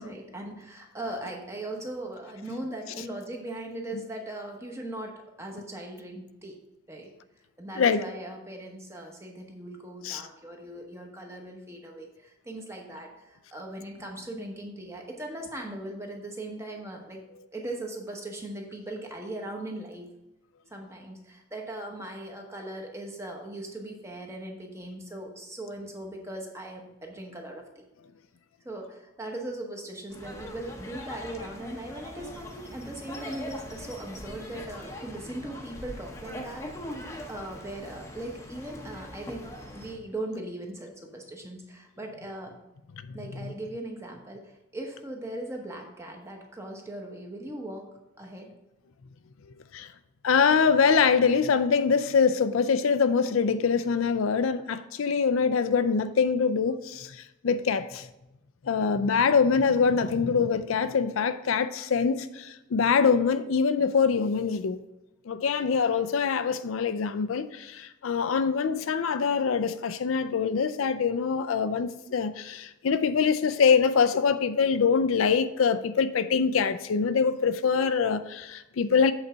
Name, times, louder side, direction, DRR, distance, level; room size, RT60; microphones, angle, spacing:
voice 1, 0.0-6.6 6.9-7.1 7.6-17.2 17.5-20.1 20.7-27.8 28.6-36.7 37.3-42.6 43.1-47.9 48.2-48.5, right 1 dB, 15° right, 1.0 m, -39 dB
sound 1, 30.1-40.0, left 1 dB, 15° left, 0.8 m, -41 dB
voice 2, 50.2-57.2 57.4-58.1 58.7-64.8 65.3-79.1, left 6 dB, 80° left, 0.4 m, -24 dB
7.9 x 4.1 x 5.5 m
head